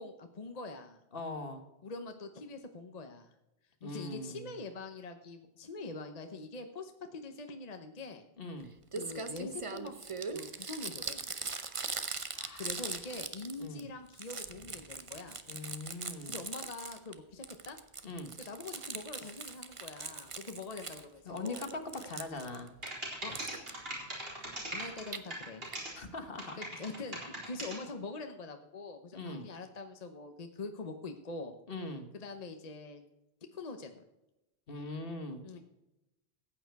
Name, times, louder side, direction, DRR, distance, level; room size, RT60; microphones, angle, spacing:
voice 1, 0.0-1.0 1.8-3.3 3.8-8.2 8.9-9.9 10.3-11.2 12.6-15.4 16.3-17.8 18.4-21.7 23.2-23.3 24.7-25.7 26.6-27.2 27.4-31.5 32.1-33.0 33.5-34.0 35.4-35.6, left 3 dB, 40° left, 6 dB, 0.9 m, -44 dB
voice 2, 1.1-1.6 3.8-4.5 8.4-8.7 12.3-12.7 13.6-13.8 15.5-16.4 18.0-18.3 21.2-22.7 23.3-23.4 26.0-26.6 29.1-29.5 31.7-32.1 34.7-35.4, left 2 dB, 60° left, 7 dB, 1.6 m, -41 dB
Crumpling crinkling, 8.6-8.7 8.9-13.8 14.1-17.1 17.4-21.0 21.4-22.9 23.3-23.7 24.8-25.2 25.7-25.8 26.0-26.1 26.3-26.4, right 4 dB, 35° right, 0.8 m, -41 dB
sound 1, 22.6-22.7 22.8-25.9 26.4-27.8, right 1 dB, 65° right, 4.3 m, -40 dB
14.5 x 8.9 x 4.6 m, 0.94 s
omnidirectional pair, 1.1 m